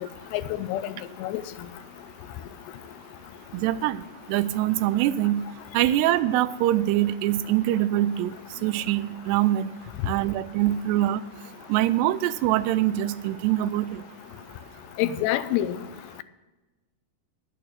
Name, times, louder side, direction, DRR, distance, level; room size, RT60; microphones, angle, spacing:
voice 1, 0.3-1.0 1.2-1.4 15.0-15.8, left 13 dB, 85° left, 2.8 m, -26 dB
voice 2, 3.5-4.0 4.3-5.4 5.7-8.3 8.6-9.7 10.1-11.2 11.7-14.0, right 13 dB, 90° right, 2.7 m, -24 dB
11.0 x 8.7 x 6.4 m
omnidirectional pair, 4.7 m